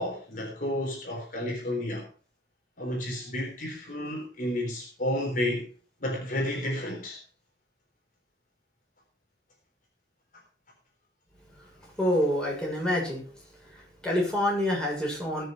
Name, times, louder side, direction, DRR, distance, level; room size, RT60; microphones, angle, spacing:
voice 1, 0.0-2.1 2.8-5.7 6.0-7.2, left 1 dB, 50° left, 3.7 m, -31 dB
voice 2, 11.5-13.2 13.7-15.5, left 1 dB, 5° left, 7.0 m, -28 dB
20.0 x 6.8 x 4.7 m
head